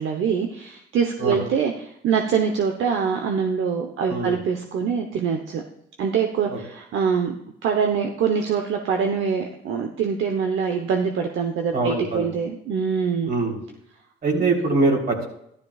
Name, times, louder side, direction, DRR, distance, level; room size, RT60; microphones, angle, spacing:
voice 1, 0.0-1.7 2.0-5.6 6.0-7.3 7.6-13.3 14.3-14.4, right 6 dB, 75° right, 4 dB, 1.0 m, -24 dB
voice 2, 4.1-4.4 6.5-6.6 11.7-12.4 13.3-13.6 14.2-15.3, right 3 dB, 50° right, 0 dB, 3.6 m, -23 dB
14.0 x 12.0 x 2.4 m, 0.76 s
cardioid pair, 90°, 20 cm